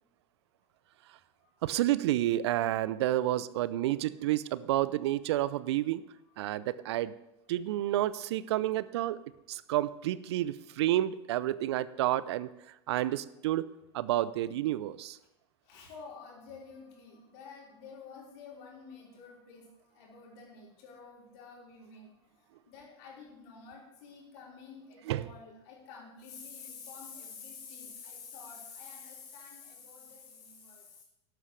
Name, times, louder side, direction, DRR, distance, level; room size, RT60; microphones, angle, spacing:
voice 1, 1.6-6.0 6.4-7.1 7.5-9.2 9.5-12.5 12.9-13.7 13.9-15.2 25.1-25.3, right 14 dB, 70° right, 17 dB, 0.5 m, -30 dB
voice 2, 15.6-31.0, left 5 dB, 60° left, -3 dB, 4.7 m, -49 dB
12.0 x 12.0 x 3.3 m, 0.89 s
hypercardioid pair, 90°, 15 cm